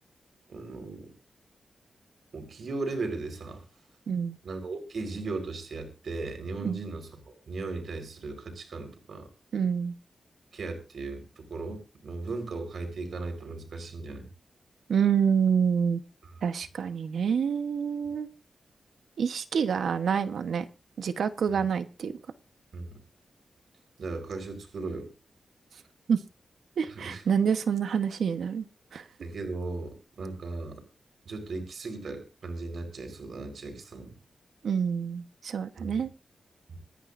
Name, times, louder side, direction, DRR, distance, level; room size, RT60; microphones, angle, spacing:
voice 1, 0.5-1.1 2.3-3.6 4.4-7.1 7.5-9.3 10.5-14.3 21.6-21.7 22.7-23.0 24.0-25.1 26.9-27.2 29.2-30.8 31.2-34.1 35.8-36.0 36.7-36.8, right 3 dB, 70° right, 6 dB, 4.4 m, -37 dB
voice 2, 4.1-4.4 6.6-6.8 9.5-9.9 14.9-16.0 16.4-18.3 19.2-20.6 21.0-22.1 26.1-26.2 26.8-28.7 28.9-29.1 34.6-36.1, right 7 dB, 90° right, 11 dB, 1.1 m, -27 dB
25.5 x 10.5 x 2.6 m, 0.30 s
wide cardioid pair, 115°, 0 cm